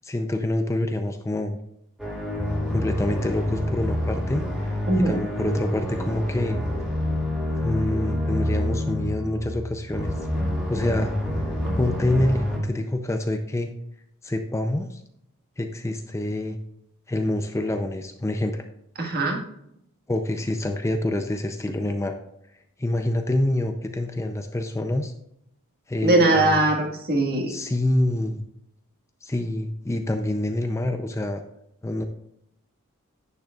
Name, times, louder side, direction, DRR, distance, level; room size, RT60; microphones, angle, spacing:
voice 1, 0.0-1.6 2.7-6.6 7.6-10.1 10.7-13.7 14.2-15.0 15.6-16.6 17.1-18.6 20.1-22.2 22.8-25.1 25.9-26.7 27.5-28.4 29.2-31.4 31.8-32.0, left 1 dB, 15° left, 6 dB, 0.4 m, -26 dB
sound 1, 2.0-12.6, left 1 dB, 5° right, 2.1 m, -27 dB
voice 2, 4.9-5.2 19.0-19.4 26.0-27.5, right 2 dB, 45° right, 1 dB, 1.7 m, -21 dB
10.0 x 9.1 x 2.4 m, 0.77 s
head